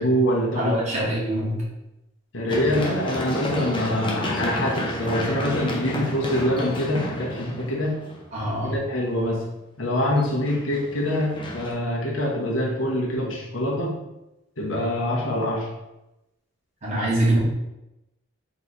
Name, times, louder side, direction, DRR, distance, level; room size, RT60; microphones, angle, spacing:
voice 1, 0.0-0.8 2.3-8.0 8.6-9.4 9.8-14.0 14.6-15.7, left 1 dB, 80° left, -2 dB, 1.1 m, -25 dB
voice 2, 0.5-1.6 8.3-8.8 16.8-17.4, right 1 dB, 35° right, -7 dB, 1.6 m, -24 dB
Run, 2.5-8.3 10.2-11.7, left 1 dB, 25° left, 0.7 m, -31 dB
3.9 x 3.1 x 4.0 m, 0.94 s
head